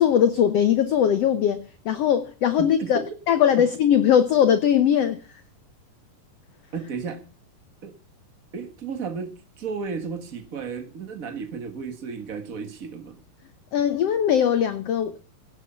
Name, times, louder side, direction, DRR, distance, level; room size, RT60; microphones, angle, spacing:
voice 1, 0.0-3.0 3.3-5.2 13.7-15.2, left 9 dB, 80° left, 1.4 m, -20 dB
voice 2, 6.7-7.2 7.8-7.9 8.5-13.2, right 5 dB, 50° right, 1.0 m, -33 dB
17.0 x 8.1 x 5.6 m
omnidirectional pair, 4.0 m